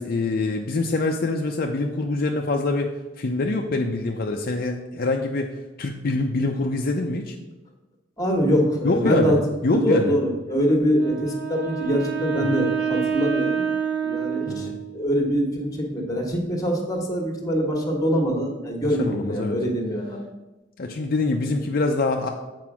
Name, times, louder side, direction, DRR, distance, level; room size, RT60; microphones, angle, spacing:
voice 1, 0.0-5.5 5.8-7.4 8.8-10.2 12.4-12.7 14.5-14.8 19.0-19.6 20.8-22.3, left 2 dB, 55° left, 2 dB, 0.6 m, -25 dB
voice 2, 8.2-9.4 9.7-13.6 14.0-14.7 14.9-20.2, equal, 20° left, 2 dB, 1.5 m, -23 dB
Wind instrument woodwind instrument, 10.9-15.2, right 7 dB, 65° right, 1.0 m, -27 dB
7.8 x 4.6 x 6.1 m, 1.1 s
head